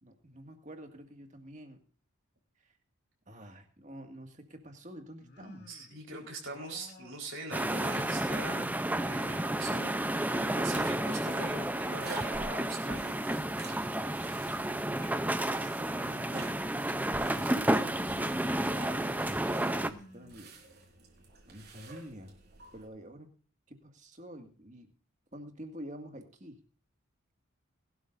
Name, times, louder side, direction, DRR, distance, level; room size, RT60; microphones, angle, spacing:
voice 1, 0.0-1.8 2.6-2.8 3.3-5.7 6.1-6.6 15.4-20.5 21.5-22.3 22.7-23.3 23.7-24.9 25.3-26.6, right 1 dB, 35° right, 5 dB, 2.1 m, -48 dB
sound 1, 5.2-6.0 6.5-8.5 8.8-9.8 10.4-11.1 11.3-12.1 12.9-13.7 14.5-15.4 16.2-16.9 17.6-18.2 18.7-19.3 19.7-20.8, left 2 dB, 50° left, 2.7 m, -56 dB
voice 2, 5.7-8.7 9.0-13.2, right 2 dB, 70° right, 0 dB, 4.5 m, -42 dB
sound 2, 7.5-19.9, right 1 dB, 10° right, 0.6 m, -31 dB
sound 3, 10.8-22.9, right 3 dB, 50° right, 4.0 m, -50 dB
21.0 x 12.5 x 2.6 m, 0.41 s
head